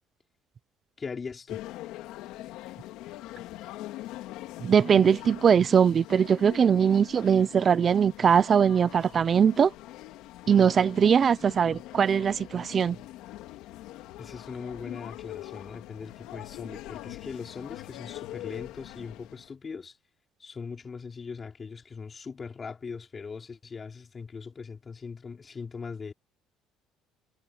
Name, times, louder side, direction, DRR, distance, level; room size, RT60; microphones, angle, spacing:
voice 1, 1.0-1.6 14.2-20.0 20.4-26.1, left 5 dB, 25° left, 4.7 m, -40 dB
sound 1, 1.5-19.5, left 15 dB, 75° left, 2.6 m, -43 dB
voice 2, 4.6-9.7 10.5-13.0, right 7 dB, 35° right, 0.8 m, -21 dB
cardioid pair, 135°, 0 cm